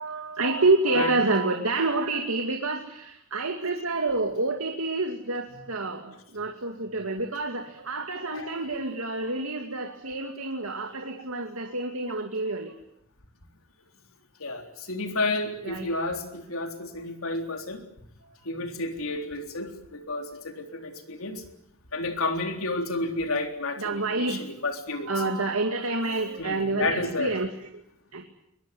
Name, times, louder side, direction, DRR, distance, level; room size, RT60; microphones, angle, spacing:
voice 1, 0.0-12.7 15.6-15.9 23.8-24.5 25.1-27.8 28.1-28.2, right 2 dB, 85° right, 4 dB, 2.4 m, -28 dB
voice 2, 14.4-17.8 18.4-21.4 21.9-25.1 26.4-27.3, left 2 dB, 75° left, 5 dB, 3.7 m, -31 dB
22.0 x 22.0 x 9.4 m, 0.77 s
head